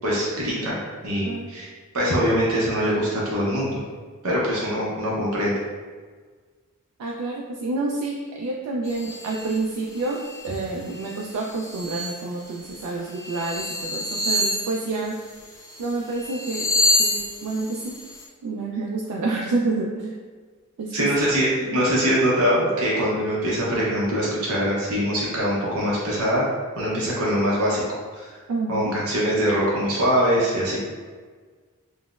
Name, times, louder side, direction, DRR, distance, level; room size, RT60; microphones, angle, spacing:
voice 1, 0.0-1.7 1.9-3.8 4.2-5.6 20.9-26.4 26.8-27.8 28.1-28.4 28.7-30.9, equal, 75° right, -6 dB, 0.7 m, -23 dB
voice 2, 7.0-15.2 15.8-16.7 17.0-18.0 18.4-20.2 20.8-21.1 21.7-21.8 28.5-28.9, right 3 dB, 90° right, -1 dB, 0.3 m, -28 dB
sound 1, 8.9-9.6 10.0-10.6 10.9-12.2 12.7-12.8 13.2-15.8 16.2-18.2, left 1 dB, 15° left, 0.4 m, -27 dB
3.9 x 2.0 x 2.3 m, 1.5 s
head